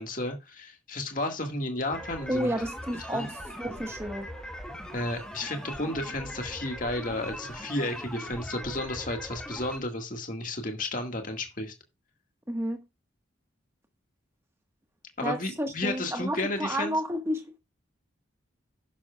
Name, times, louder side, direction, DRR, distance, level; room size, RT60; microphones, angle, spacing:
voice 1, 0.0-2.5 3.1-3.3 4.9-11.7 15.2-17.0, left 1 dB, 45° left, 1.8 m, -32 dB
sound 1, 1.9-9.8, equal, 5° left, 1.9 m, -40 dB
voice 2, 2.3-3.3 3.6-4.3 12.5-12.8 15.2-17.6, equal, 15° right, 1.4 m, -31 dB
12.0 x 10.5 x 2.4 m
head